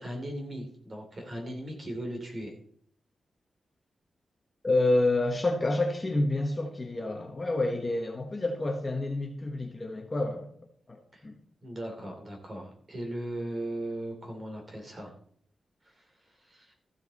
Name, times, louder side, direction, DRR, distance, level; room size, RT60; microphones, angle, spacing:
voice 1, 0.0-2.5 11.1-11.3 11.6-15.1 15.8-16.7, right 1 dB, 30° right, 2 dB, 2.9 m, -38 dB
voice 2, 4.6-10.5 10.9-11.4, left 2 dB, 20° left, 2 dB, 1.2 m, -28 dB
14.0 x 8.0 x 4.1 m, 0.62 s
wide cardioid pair, 165°, 0 cm